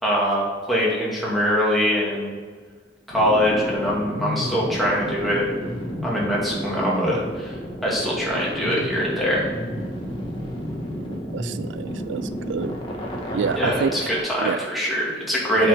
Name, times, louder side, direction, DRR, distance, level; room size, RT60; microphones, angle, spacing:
voice 1, 0.0-2.3 3.1-5.4 6.0-9.5 13.6-15.7, equal, ahead, -6 dB, 2.4 m, -23 dB
sound 1, 3.1-14.2, equal, 25° left, 1.6 m, -31 dB
voice 2, 11.0-12.8 13.3-13.9 14.4-14.6 15.6-15.7, right 6 dB, 75° right, 13 dB, 0.4 m, -28 dB
8.3 x 5.6 x 5.1 m, 1.5 s
head